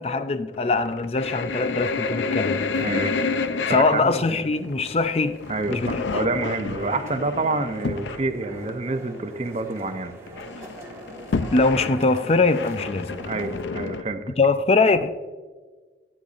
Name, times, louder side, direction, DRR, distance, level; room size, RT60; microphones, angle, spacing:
voice 1, 0.0-2.7 3.7-5.4 5.7-6.0 11.5-13.1 14.4-15.1, left 3 dB, 35° left, 0.5 m, -22 dB
sound 1, 0.5-8.3 8.6-8.7 9.2-9.3 9.5-10.0 10.3-14.0, left 4 dB, 90° left, 0.5 m, -30 dB
sound 2, 2.7-13.6, right 1 dB, 15° right, 1.5 m, -45 dB
voice 2, 2.8-3.1 3.7-4.2 5.5-10.1 13.3-14.3, right 3 dB, 35° right, 0.6 m, -28 dB
12.0 x 10.0 x 2.5 m
head